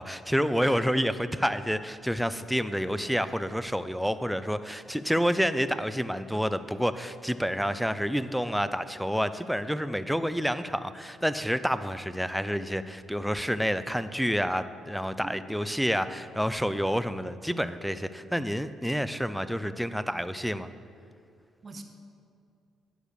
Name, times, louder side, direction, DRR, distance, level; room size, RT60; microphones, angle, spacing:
voice 1, 0.0-20.7, equal, ahead, 12 dB, 0.4 m, -29 dB
voice 2, 0.6-1.0 15.2-15.3 21.6-21.8, right 3 dB, 35° right, 6 dB, 1.0 m, -42 dB
11.0 x 5.0 x 6.6 m, 2.4 s
cardioid pair, 90°, 0 cm